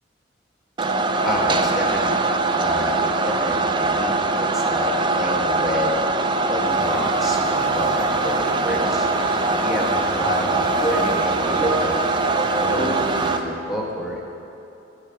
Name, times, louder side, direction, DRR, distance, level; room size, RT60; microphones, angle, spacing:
sound 1, 0.8-13.4, right 3 dB, 25° right, 0.3 m, -22 dB
voice 1, 1.2-2.2 2.5-9.1 9.5-14.2, equal, ahead, -3 dB, 1.1 m, -28 dB
sound 2, 6.7-13.3, right 1 dB, 70° right, 1.9 m, -34 dB
10.5 x 4.9 x 5.7 m, 2.9 s
head